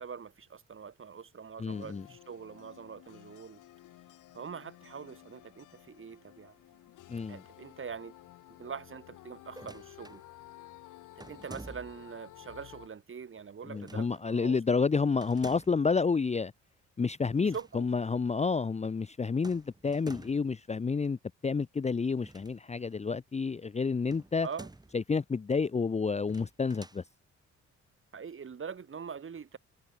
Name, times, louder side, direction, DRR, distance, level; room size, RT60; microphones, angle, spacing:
voice 1, 0.0-3.6 4.3-6.6 7.3-8.1 8.6-10.2 11.2-14.8 17.4-17.9 24.4-24.7 28.1-29.6, right 6 dB, 45° right, 5.6 m, -43 dB
voice 2, 1.6-2.0 7.1-7.4 13.7-16.5 17.0-21.2 21.4-24.5 24.9-27.0, left 5 dB, 20° left, 0.8 m, -29 dB
sound 1, 1.7-12.9, left 15 dB, 90° left, 6.7 m, -54 dB
sound 2, 9.5-10.2 11.2-12.1 13.7-14.2 15.2-15.9 17.3-17.8 18.0-18.1 19.4-20.5 22.1-23.0 24.1-25.0 26.2-27.0, right 2 dB, 15° right, 5.5 m, -50 dB
cardioid pair, 90°, 30 cm